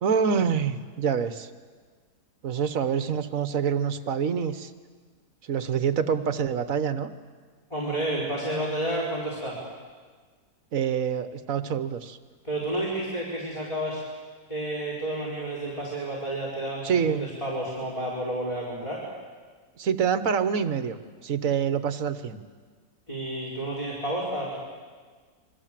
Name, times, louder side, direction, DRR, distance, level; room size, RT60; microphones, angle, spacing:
voice 1, 0.0-1.5 2.4-4.7 5.4-7.1 10.7-12.2 16.8-17.3 19.8-21.0 21.2-22.4, right 7 dB, 60° right, 11 dB, 1.5 m, -26 dB
voice 2, 7.7-9.6 12.4-14.0 14.5-19.0 23.1-24.6, right 1 dB, 20° left, -5 dB, 5.0 m, -30 dB
28.0 x 23.5 x 7.6 m, 1.5 s
omnidirectional pair, 1.7 m